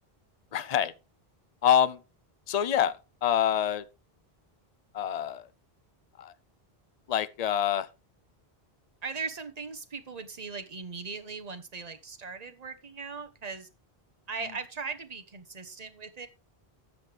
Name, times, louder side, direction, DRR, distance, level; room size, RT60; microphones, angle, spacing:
voice 1, 0.5-0.9 1.6-2.0 2.5-2.9 3.2-3.8 4.9-5.5 6.2-6.3 7.1-7.9, left 9 dB, 45° left, 0.7 m, -26 dB
voice 2, 9.0-13.7 14.3-16.3, right 4 dB, 40° right, 1.2 m, -39 dB
13.0 x 7.8 x 3.4 m
omnidirectional pair, 1.0 m